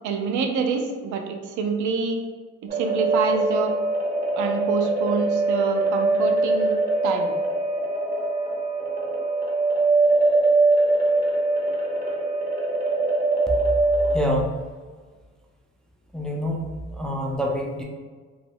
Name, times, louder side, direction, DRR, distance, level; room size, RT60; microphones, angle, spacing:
voice 1, 0.0-2.2 2.6-3.7 4.4-6.8 7.0-7.4, right 5 dB, 75° right, 4 dB, 0.4 m, -26 dB
sound 1, 2.7-14.2, right 2 dB, 30° right, 0.6 m, -22 dB
voice 2, 14.1-14.5 16.1-16.6 16.9-17.8, equal, ahead, -1 dB, 0.3 m, -26 dB
2.3 x 2.0 x 3.3 m, 1.5 s
cardioid pair, 90°, 30 cm